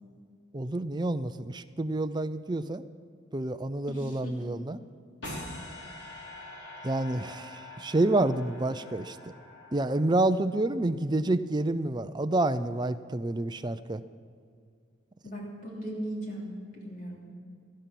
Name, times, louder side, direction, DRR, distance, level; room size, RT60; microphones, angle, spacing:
voice 1, 0.5-2.8 3.3-4.8 6.8-9.3 9.7-14.0, right 2 dB, 20° right, 11 dB, 0.5 m, -28 dB
voice 2, 3.9-4.5 15.2-17.3, right 1 dB, 40° left, -2 dB, 3.0 m, -38 dB
sound 1, 5.2-10.4, left 1 dB, 55° left, 3.9 m, -44 dB
18.0 x 12.5 x 6.0 m, 2.2 s
head